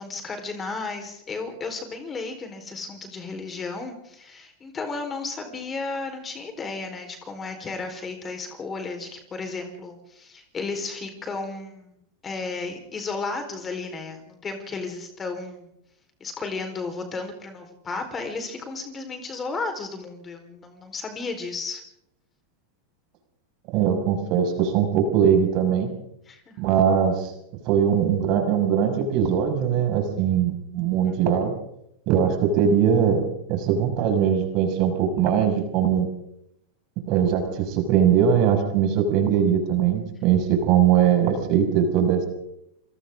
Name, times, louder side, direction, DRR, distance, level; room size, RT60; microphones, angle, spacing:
voice 1, 0.0-12.0 12.2-15.7 16.2-21.8 26.3-26.6, left 3 dB, 20° left, 6 dB, 4.4 m, -33 dB
voice 2, 23.7-25.9 26.6-27.3 27.6-31.5 32.1-33.2 33.5-36.1 37.1-42.3, right 8 dB, 40° right, 4 dB, 6.2 m, -21 dB
28.5 x 26.5 x 3.8 m, 0.79 s
figure-of-eight pair, 90°, 0 cm